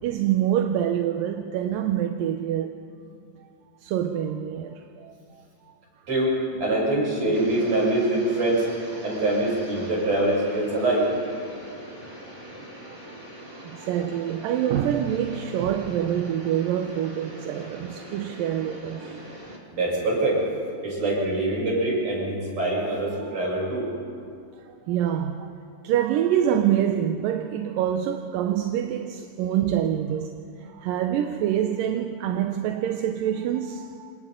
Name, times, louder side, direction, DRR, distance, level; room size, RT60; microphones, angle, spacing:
voice 1, 0.0-2.8 3.8-5.2 11.5-11.6 12.3-12.4 12.9-13.2 13.6-19.3 22.8-22.9 23.3-23.7 24.6-25.6 25.8-30.3 30.6-34.1, right 10 dB, 85° right, 2.5 m, -26 dB
voice 2, 6.1-8.7 9.0-11.1 19.7-20.5 20.8-23.9, right 1 dB, 50° right, 8.6 m, -24 dB
sound 1, 7.3-19.6, right 1 dB, 20° right, 2.7 m, -42 dB
28.0 x 27.0 x 3.8 m
omnidirectional pair, 3.9 m